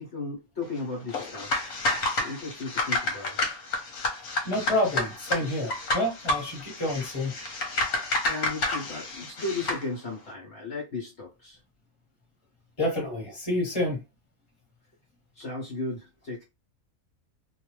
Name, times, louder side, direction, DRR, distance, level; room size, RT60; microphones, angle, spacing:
voice 1, 0.0-3.4 7.8-11.6 15.3-16.4, left 3 dB, 55° left, 1.2 m, -36 dB
sound 1, 1.1-9.8, left 2 dB, 75° left, 1.3 m, -30 dB
voice 2, 4.4-7.3 12.8-14.0, left 1 dB, 25° left, 1.4 m, -28 dB
2.6 x 2.3 x 3.1 m
omnidirectional pair, 1.4 m